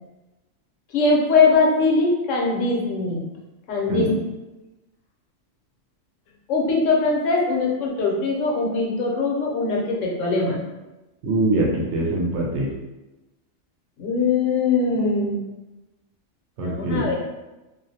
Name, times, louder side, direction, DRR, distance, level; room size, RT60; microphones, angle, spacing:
voice 1, 0.9-3.2 3.7-4.1 6.5-10.6 14.0-15.4 16.6-17.2, left 3 dB, 75° left, -2 dB, 0.9 m, -21 dB
voice 2, 11.2-12.7 16.6-17.2, right 2 dB, 65° right, -1 dB, 0.8 m, -23 dB
2.4 x 2.1 x 2.6 m, 1.0 s
omnidirectional pair, 1.4 m